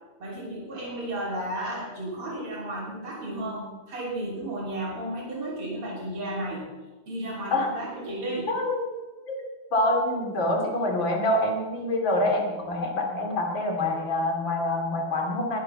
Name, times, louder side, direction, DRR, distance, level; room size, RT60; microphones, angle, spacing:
voice 1, 0.2-6.7 7.1-8.5 12.6-12.7, right 1 dB, 90° right, -5 dB, 4.3 m, -33 dB
voice 2, 8.5-8.8 9.3-9.4 9.7-15.6, left 1 dB, 60° left, 1 dB, 3.5 m, -26 dB
20.5 x 9.1 x 5.7 m, 1.3 s
omnidirectional pair, 2.4 m